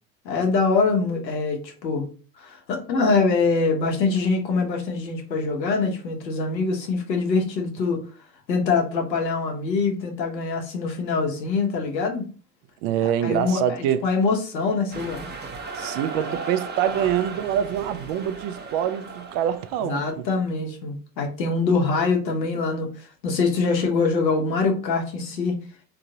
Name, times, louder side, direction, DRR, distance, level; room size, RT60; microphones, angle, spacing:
voice 1, 0.2-2.1 2.4-8.0 8.5-12.2 13.0-15.3 19.8-25.5, left 4 dB, 85° left, 1.1 m, -24 dB
voice 2, 12.8-14.1 15.8-20.2, right 10 dB, 55° right, 0.6 m, -25 dB
sound 1, 14.9-20.0, right 4 dB, 20° right, 0.8 m, -36 dB
3.7 x 3.0 x 2.7 m
hypercardioid pair, 75°, 49 cm